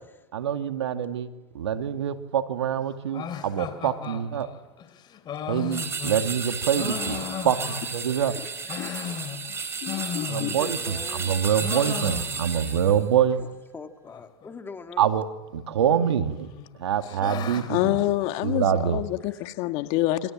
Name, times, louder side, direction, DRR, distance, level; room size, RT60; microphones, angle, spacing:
voice 1, 0.3-1.3 1.5-4.5 5.5-8.4 10.3-13.4 15.0-15.2 15.5-16.5 16.8-17.9 18.4-19.0, right 9 dB, 90° right, 2.4 m, -25 dB
sound 1, 3.1-8.1 8.5-10.9 11.2-12.7 13.0-13.1 13.3-13.4 14.1-14.5 15.5-16.1 16.5-18.9, left 8 dB, 30° left, 3.2 m, -36 dB
sound 2, 5.7-13.0, right 5 dB, 20° right, 4.6 m, -33 dB
voice 2, 7.6-9.2 10.4-11.4 13.4-15.1 19.3-19.4, left 4 dB, 15° left, 2.9 m, -43 dB
voice 3, 9.8-10.5 17.7-20.3, left 16 dB, 50° left, 1.9 m, -27 dB
29.0 x 25.0 x 7.6 m
hypercardioid pair, 120°, 14 cm